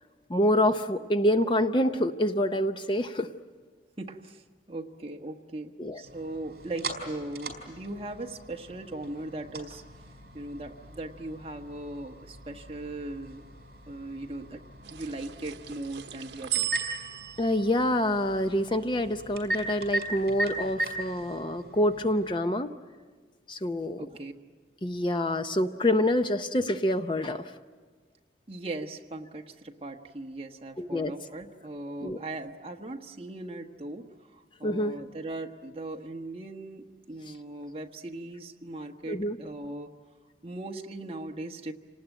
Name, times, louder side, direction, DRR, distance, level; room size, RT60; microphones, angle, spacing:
voice 1, 0.3-3.3 5.8-6.0 17.4-22.7 23.5-24.0 24.8-27.4 30.8-31.1 32.0-32.2 34.6-34.9 39.1-39.4, left 1 dB, 25° left, 8 dB, 0.6 m, -26 dB
voice 2, 4.0-9.8 10.3-13.4 13.9-14.6 14.9-16.9 24.0-24.3 28.5-34.1 34.3-39.9 40.4-41.7, right 2 dB, 30° right, 3 dB, 1.3 m, -39 dB
sound 1, 6.0-22.4, right 1 dB, 55° right, 4.6 m, -39 dB
sound 2, 14.8-19.4, right 15 dB, 85° right, 0.9 m, -37 dB
28.0 x 19.0 x 9.0 m, 1.5 s
head